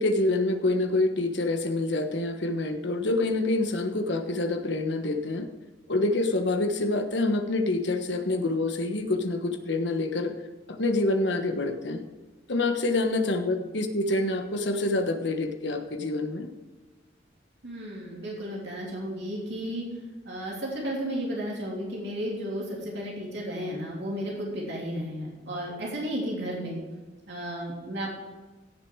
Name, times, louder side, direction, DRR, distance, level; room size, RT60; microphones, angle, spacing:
voice 1, 0.0-5.5 5.9-10.3 10.7-12.0 12.5-16.5, left 2 dB, 65° left, 6 dB, 1.3 m, -26 dB
voice 2, 17.6-19.9 20.2-26.8 27.3-28.1, equal, 60° right, -3 dB, 3.2 m, -33 dB
16.5 x 6.8 x 4.7 m, 1.2 s
head